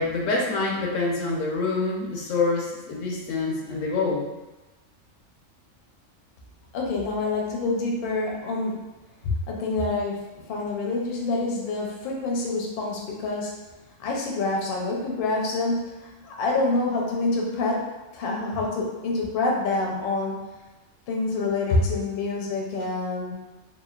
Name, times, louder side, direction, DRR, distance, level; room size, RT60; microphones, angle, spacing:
voice 1, 0.0-4.3 9.2-9.4 21.7-21.8, left 3 dB, 85° left, -1 dB, 1.0 m, -25 dB
voice 2, 6.7-8.8 9.5-13.6 14.0-20.6 21.1-23.3, left 3 dB, 60° left, -2 dB, 0.6 m, -27 dB
3.0 x 2.1 x 2.3 m, 1.1 s
omnidirectional pair, 1.3 m